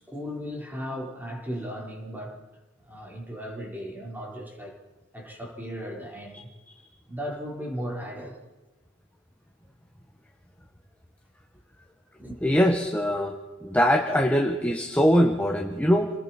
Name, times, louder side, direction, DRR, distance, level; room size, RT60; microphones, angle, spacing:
voice 1, 0.1-2.4 2.9-4.8 5.1-6.5 7.1-8.4 12.2-12.4, equal, 10° right, -1 dB, 4.4 m, -36 dB
voice 2, 12.4-13.3 13.6-16.1, equal, 5° left, 2 dB, 1.4 m, -22 dB
29.5 x 20.0 x 4.4 m, 1.2 s
head